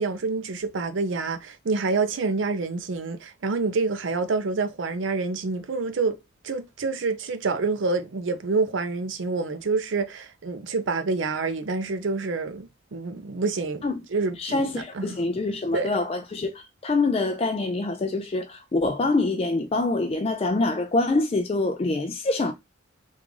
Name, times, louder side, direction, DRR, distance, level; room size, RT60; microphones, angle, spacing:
voice 1, 0.0-6.2 6.4-13.8 14.1-15.2 15.7-15.9, right 4 dB, 75° right, 0.5 m, -27 dB
voice 2, 14.4-22.5, left 2 dB, 30° left, 0.4 m, -25 dB
3.6 x 2.4 x 3.1 m
head